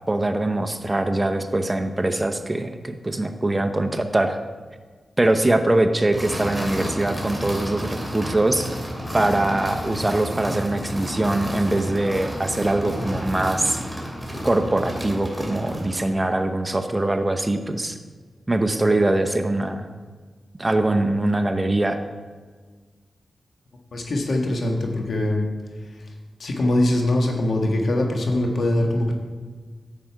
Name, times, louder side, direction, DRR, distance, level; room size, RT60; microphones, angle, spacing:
voice 1, 0.0-4.4 5.2-8.7 9.1-13.8 14.4-18.0 18.5-19.9 20.6-22.0, right 2 dB, 25° right, 7 dB, 0.8 m, -22 dB
sound 1, 6.1-16.1, equal, 10° left, 2.6 m, -31 dB
voice 2, 23.9-25.4 26.4-29.1, left 1 dB, 70° left, 2 dB, 1.5 m, -22 dB
10.5 x 7.7 x 4.7 m, 1.5 s
cardioid pair, 60°, 0 cm